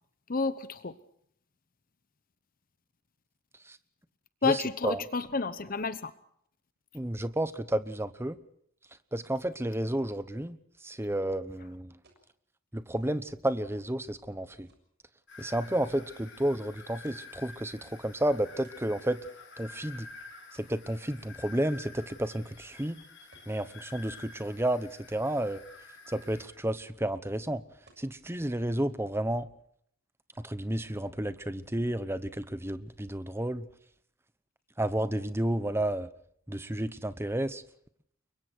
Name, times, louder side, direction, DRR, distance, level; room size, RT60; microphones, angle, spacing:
voice 1, 0.3-1.0 4.4-6.1, left 4 dB, 40° left, 13 dB, 0.9 m, -30 dB
voice 2, 4.4-5.0 6.9-8.4 9.1-10.6 10.8-12.0 12.7-14.7 15.4-19.2 19.6-20.1 20.5-23.0 23.5-25.6 26.1-27.6 28.0-29.5 30.4-33.7 34.8-36.1 36.5-37.6, right 1 dB, 10° right, 13 dB, 1.0 m, -31 dB
sound 1, 12.0-12.3 12.8-13.9 14.5-14.7 15.4-16.3 17.0-18.2 18.6-19.1 19.8-21.4 22.0-22.2 22.6-22.8 23.3-23.5 23.8-24.7 25.1-25.6 25.9-26.0 26.2-26.8 27.9-28.1 28.4-28.9, right 2 dB, 50° right, 6.8 m, -64 dB
sound 2, 15.3-26.5, left 4 dB, 55° left, 7.4 m, -50 dB
30.0 x 23.5 x 4.5 m, 0.67 s
head